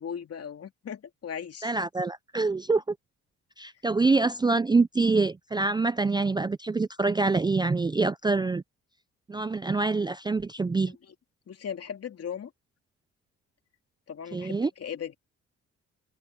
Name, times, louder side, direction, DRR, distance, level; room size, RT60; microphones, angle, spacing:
voice 1, 0.0-1.7 10.9-11.1 11.5-12.5 14.1-15.1, left 8 dB, 55° left, 2.8 m, -38 dB
voice 2, 1.6-2.8 3.6-8.6 9.3-11.0 14.3-14.7, right 3 dB, 15° right, 0.4 m, -25 dB
cardioid pair, 90°, 30 cm